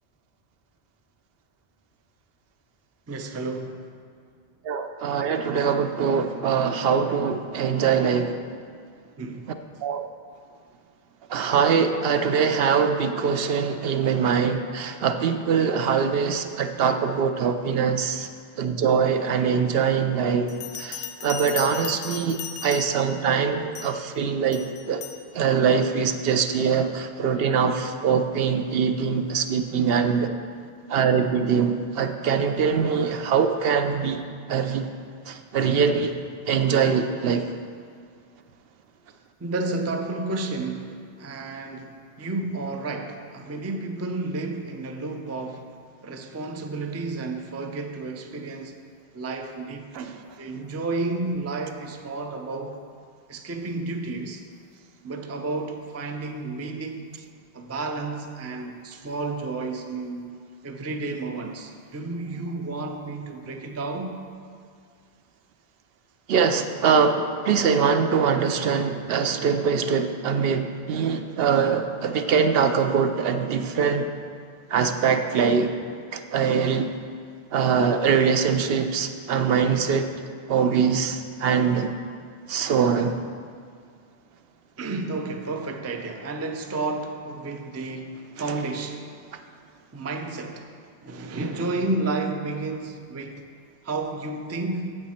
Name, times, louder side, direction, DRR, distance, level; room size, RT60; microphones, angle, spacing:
voice 1, 3.1-3.9 9.2-9.5 39.4-45.8 46.0-48.8 49.1-52.8 53.3-54.4 55.0-57.1 57.5-60.3 60.6-64.2 84.8-89.1 89.9-90.7 91.0-93.4 93.8-95.0, right 3 dB, 25° right, 0.4 m, -31 dB
voice 2, 4.6-8.4 9.8-10.1 11.3-18.3 18.6-25.0 25.3-30.3 30.9-34.2 34.5-34.9 35.3-36.1 36.5-37.5 49.9-50.1 66.3-74.1 74.7-75.7 76.1-76.9 77.5-80.1 80.5-81.9 82.5-83.2, right 6 dB, 70° right, 0.8 m, -23 dB
Bell, 20.5-23.2 23.7-24.1 24.5-25.2, left 8 dB, 75° left, 0.8 m, -36 dB
8.9 x 7.7 x 4.3 m
omnidirectional pair, 1.0 m